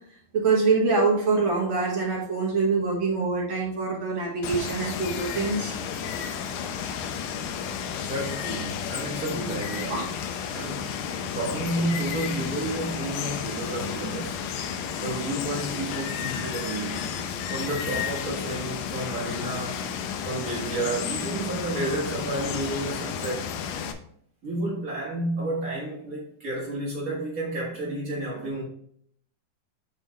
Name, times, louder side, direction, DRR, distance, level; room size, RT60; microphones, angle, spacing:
voice 1, 0.3-5.7 9.9-10.1 10.5-10.6, right 4 dB, 50° right, 1.6 m, -25 dB
Water, 4.4-23.9, left 7 dB, 80° left, 2.2 m, -32 dB
voice 2, 8.0-10.0 10.5-11.0 11.3-14.4 15.0-17.1 17.5-19.9 20.2-23.5 24.4-28.6, right 1 dB, 90° right, 0.7 m, -31 dB
8.8 x 4.4 x 3.1 m
omnidirectional pair, 4.0 m